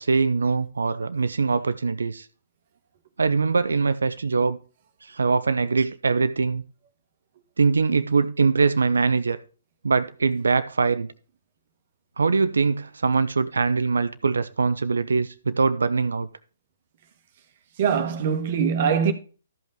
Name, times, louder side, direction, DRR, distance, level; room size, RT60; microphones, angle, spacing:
voice 1, 0.0-2.3 3.2-4.6 5.1-6.6 7.6-9.4 9.8-11.1 12.2-16.3, right 4 dB, 75° right, 0.8 m, -22 dB
voice 2, 17.8-19.1, right 7 dB, 50° right, 1.4 m, -22 dB
13.5 x 5.5 x 3.8 m
figure-of-eight pair, 130°, 0 cm